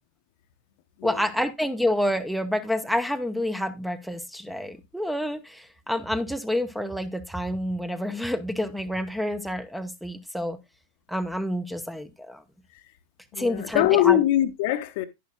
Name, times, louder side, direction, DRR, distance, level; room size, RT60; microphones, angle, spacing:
voice 1, 1.0-10.6 11.1-12.4 13.4-14.2, left 1 dB, ahead, 0.8 m, -28 dB
voice 2, 13.3-15.0, left 13 dB, 50° left, 0.9 m, -22 dB
10.5 x 10.5 x 2.3 m
figure-of-eight pair, 90°, 0 cm